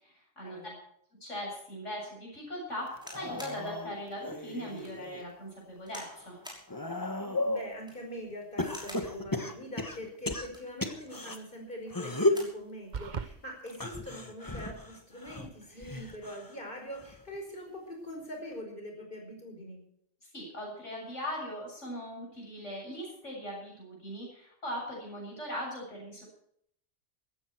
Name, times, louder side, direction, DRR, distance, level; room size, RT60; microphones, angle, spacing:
voice 1, 0.0-0.6 1.2-6.3 20.3-26.2, equal, 75° left, -2 dB, 8.0 m, -40 dB
sound 1, 2.9-5.3 5.8-7.7 8.6-11.4 11.9-12.5 13.7-16.6 16.9-17.4 18.5-18.6, left 2 dB, 15° left, 1.4 m, -34 dB
sound 2, 3.0-3.6 4.2-4.3 4.8-4.9 5.9-6.2 6.4-6.7 7.7-8.1 8.6-9.1 10.3-10.8 11.9-12.6 13.0-13.1 13.3-13.8 14.7-14.9, equal, 5° right, 5.8 m, -48 dB
voice 2, 7.2-19.8, equal, 45° left, 2 dB, 5.1 m, -43 dB
sound 3, 12.9-13.3, right 6 dB, 40° right, 0.9 m, -36 dB
16.5 x 14.5 x 4.6 m, 0.69 s
omnidirectional pair, 1.3 m